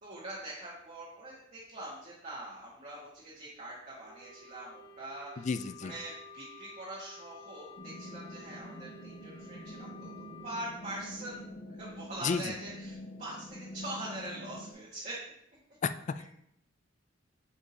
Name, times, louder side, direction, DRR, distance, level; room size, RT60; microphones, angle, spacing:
voice 1, 0.0-10.1 10.4-11.4 11.8-15.2, right 1 dB, 40° right, -7 dB, 1.5 m, -43 dB
Wind instrument woodwind instrument, 4.0-10.7, left 3 dB, 75° left, 0.9 m, -52 dB
voice 2, 5.4-5.9 12.2-12.5 15.8-16.4, left 5 dB, 35° left, 11 dB, 0.3 m, -32 dB
sound 1, 7.8-14.7, equal, 55° left, 1.4 m, -46 dB
8.3 x 5.0 x 2.8 m, 0.74 s
head